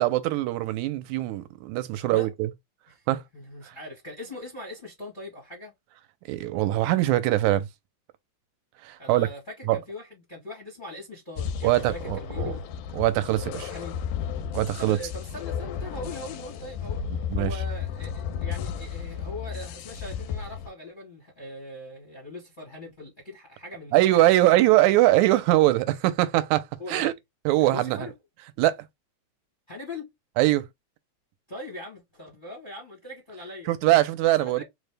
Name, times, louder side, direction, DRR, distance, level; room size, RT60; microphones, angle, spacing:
voice 1, 0.0-2.5 3.1-3.2 3.7-3.8 6.3-7.7 8.8-9.3 9.7-9.8 11.6-12.6 12.9-13.7 14.5-15.0 17.1-17.5 23.9-27.1 27.5-28.1 28.6-28.9 30.4-30.7 33.7-34.6, right 16 dB, 85° right, 1.9 m, -22 dB
voice 2, 1.9-2.3 2.9-3.0 3.3-5.7 9.0-12.6 13.7-14.0 14.8-17.0 17.4-25.0 26.8-27.1 27.6-28.1 29.7-30.1 31.5-33.7 34.4-34.6, left 2 dB, 55° left, 0.5 m, -40 dB
sound 1, 11.4-20.7, left 7 dB, 85° left, 2.0 m, -33 dB
4.8 x 2.1 x 3.3 m
omnidirectional pair, 3.4 m